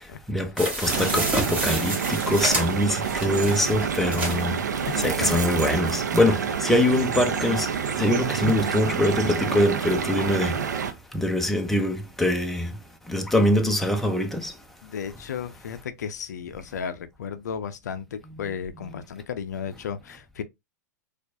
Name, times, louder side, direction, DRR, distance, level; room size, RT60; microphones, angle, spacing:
voice 1, 0.3-4.6 5.0-10.5 11.1-12.7 13.1-14.5 18.3-18.4, left 1 dB, ahead, 0.7 m, -23 dB
sound 1, 0.6-4.5 5.0-5.1 5.3-5.4, right 2 dB, 15° right, 1.5 m, -29 dB
sound 2, 0.9-10.9, right 7 dB, 75° right, 0.6 m, -28 dB
voice 2, 4.0-4.3 4.7-5.4 14.8-20.4, left 7 dB, 70° left, 0.5 m, -34 dB
4.3 x 2.4 x 2.7 m
hypercardioid pair, 105°, 10 cm